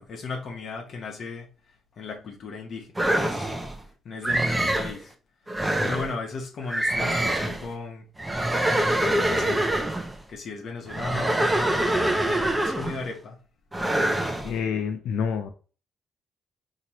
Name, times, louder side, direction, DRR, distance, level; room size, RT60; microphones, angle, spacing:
voice 1, 0.0-1.5 2.0-2.9 3.1-3.5 3.8-5.1 5.8-8.0 8.7-9.7 10.3-13.4, left 4 dB, 60° left, 1.0 m, -36 dB
sound 1, 3.0-3.8 4.2-5.0 5.5-6.1 6.7-7.7 8.2-10.1 10.9-13.1 13.7-14.5, right 1 dB, 15° right, 0.6 m, -25 dB
voice 2, 14.4-15.5, left 7 dB, 80° left, 0.5 m, -27 dB
4.2 x 2.9 x 3.0 m
cardioid pair, 90°, 0 cm